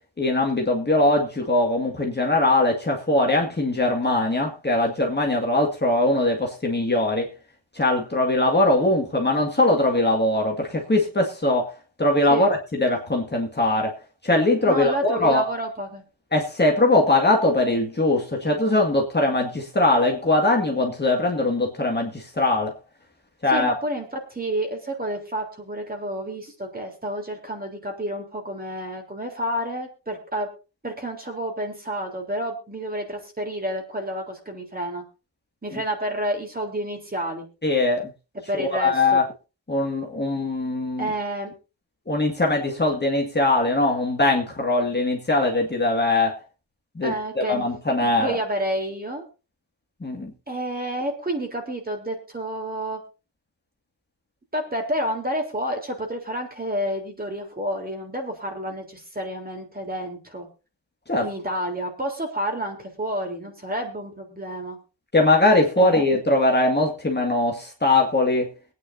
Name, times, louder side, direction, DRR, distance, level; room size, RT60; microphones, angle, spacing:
voice 1, 0.2-7.3 7.7-11.7 12.0-13.9 14.2-15.5 16.3-22.7 23.4-23.7 35.7-35.8 37.6-38.1 38.5-39.2 39.7-41.1 42.1-46.4 47.0-48.3 50.0-50.3 61.1-61.3 65.1-68.5, left 2 dB, 25° left, -1 dB, 2.1 m, -21 dB
voice 2, 14.7-16.0 23.5-30.5 30.8-35.0 35.6-37.5 38.5-39.2 41.0-41.5 47.0-47.7 48.0-49.2 50.5-53.0 54.5-60.5 61.2-64.8 65.8-66.1, right 1 dB, 20° right, 2 dB, 3.6 m, -29 dB
22.5 x 9.4 x 2.7 m, 0.30 s
wide cardioid pair, 110°, 44 cm